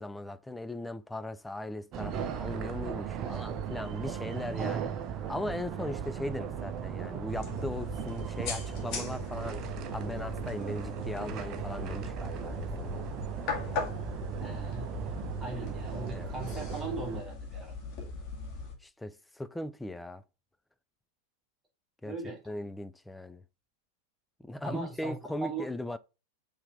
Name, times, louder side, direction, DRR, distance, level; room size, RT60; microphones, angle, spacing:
voice 1, 0.0-9.7 9.9-13.0 16.1-16.3 18.8-20.2 22.0-22.2 22.5-23.4 24.4-26.0, left 1 dB, 5° left, 0.4 m, -38 dB
sound 1, 1.9-17.2, right 8 dB, 35° right, 0.8 m, -37 dB
sound 2, 7.3-18.8, left 4 dB, 40° left, 2.0 m, -40 dB
voice 2, 14.4-14.9 15.4-17.7 22.0-22.4 24.6-25.7, right 3 dB, 15° right, 2.3 m, -39 dB
5.6 x 3.4 x 5.4 m
figure-of-eight pair, 90°, 0 cm